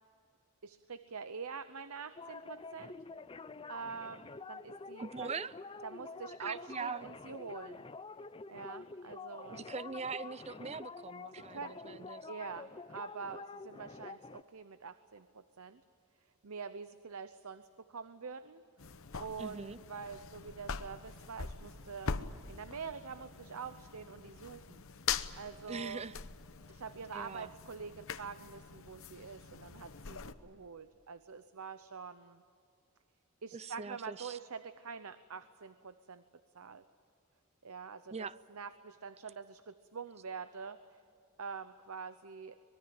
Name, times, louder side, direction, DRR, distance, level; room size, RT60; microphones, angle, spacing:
voice 1, 0.6-3.0 3.7-5.3 5.8-7.9 8.5-9.7 11.3-15.8 16.2-18.6 19.2-22.2 22.5-24.8 25.4-26.0 26.7-32.4 33.4-36.2 36.5-36.9 37.6-41.0 41.4-42.6, right 5 dB, 75° right, 12 dB, 0.8 m, -46 dB
sound 1, 2.2-14.4, left 4 dB, 25° left, 0.5 m, -48 dB
voice 2, 5.0-5.5 6.4-7.1 9.5-12.3 19.4-19.8 25.7-26.2 27.1-27.5 33.5-34.4 38.1-38.4, right 5 dB, 30° right, 17 dB, 0.5 m, -42 dB
sound 2, 18.8-30.3, left 6 dB, 65° left, 1.0 m, -43 dB
24.5 x 21.5 x 8.9 m, 2.4 s
head